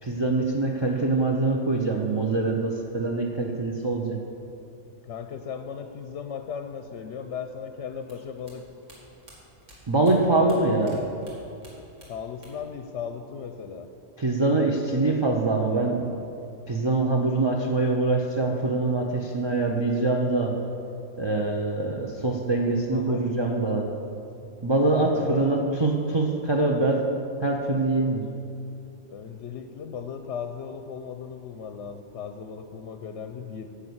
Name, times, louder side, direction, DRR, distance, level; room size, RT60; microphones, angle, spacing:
voice 1, 0.0-4.2 9.9-11.0 14.2-16.1 16.7-20.6 21.2-23.9 24.6-27.0 27.4-28.3, right 2 dB, 25° right, 0 dB, 0.6 m, -24 dB
voice 2, 5.0-8.6 10.3-10.8 12.1-13.9 21.5-21.6 22.8-23.3 25.0-25.5 29.1-33.7, left 7 dB, 65° left, 7 dB, 0.9 m, -37 dB
sound 1, 8.0-11.0 11.2-12.7 13.0-13.8, equal, 65° right, 2.5 m, -51 dB
9.7 x 6.6 x 7.9 m, 2.7 s
omnidirectional pair, 1.4 m